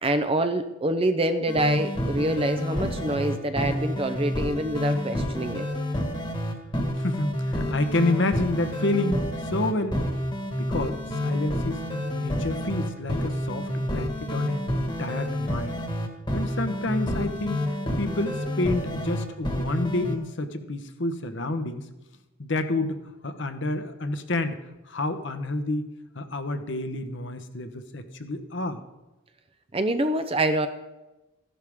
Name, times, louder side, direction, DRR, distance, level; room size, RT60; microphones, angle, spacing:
voice 1, 0.0-5.7 29.7-30.7, right 1 dB, 25° right, 8 dB, 0.6 m, -26 dB
sound 1, 1.5-20.2, left 1 dB, 20° left, 1.5 m, -29 dB
voice 2, 7.0-10.1 10.6-14.6 15.0-15.8 16.3-17.6 18.0-21.9 22.4-24.6 24.9-25.9 26.1-28.8, left 2 dB, 60° left, 8 dB, 1.0 m, -29 dB
15.0 x 11.0 x 3.6 m, 1.0 s
head